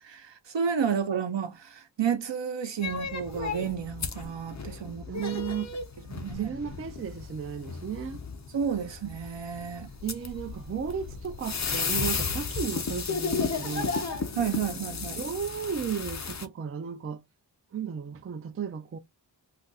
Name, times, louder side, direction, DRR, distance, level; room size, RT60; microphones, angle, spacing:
voice 1, 0.1-5.0 6.1-6.5 8.5-9.9 14.3-15.2, right 7 dB, 75° right, 0.8 m, -31 dB
sound 1, 2.8-16.5, left 5 dB, 40° left, 0.6 m, -34 dB
voice 2, 5.1-5.7 6.3-8.2 10.0-14.0 15.2-17.2 17.7-19.0, right 7 dB, 35° right, 0.4 m, -34 dB
2.5 x 2.2 x 3.9 m
wide cardioid pair, 70°, 44 cm